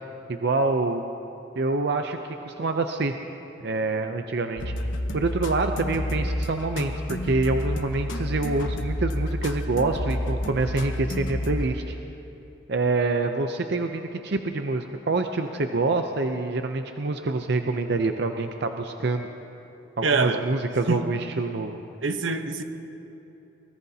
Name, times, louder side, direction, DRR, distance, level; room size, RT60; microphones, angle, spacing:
voice 1, 0.3-1.0 1.6-3.1 3.6-4.7 5.1-11.9 12.7-19.3 20.0-21.8, right 3 dB, 60° right, 6 dB, 0.6 m, -26 dB
sound 1, 4.6-11.7, left 1 dB, 80° left, 1.0 m, -29 dB
voice 2, 20.0-20.4 20.9-21.0 22.0-22.6, right 3 dB, 85° right, 7 dB, 1.0 m, -24 dB
24.0 x 20.5 x 2.8 m, 2.9 s
head